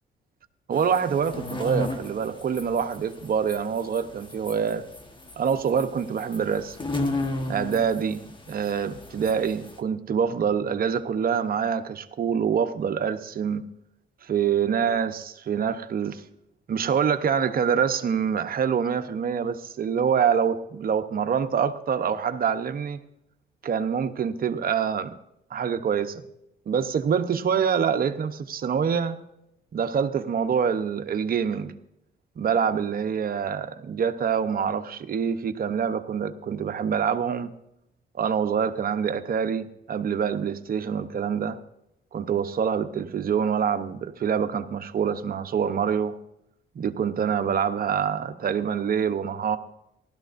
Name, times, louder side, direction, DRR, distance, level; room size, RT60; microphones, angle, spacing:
sound 1, 0.7-9.8, left 1 dB, 25° left, 1.3 m, -34 dB
voice 1, 0.7-4.8 5.4-6.8 7.5-13.6 14.2-16.2 16.7-23.0 23.6-25.1 25.5-26.2 26.7-29.2 29.7-31.7 32.4-37.5 38.1-41.6 42.1-46.1 46.7-49.6, right 7 dB, 50° right, 8 dB, 0.8 m, -25 dB
16.0 x 12.5 x 2.6 m, 0.81 s
cardioid pair, 90°, 20 cm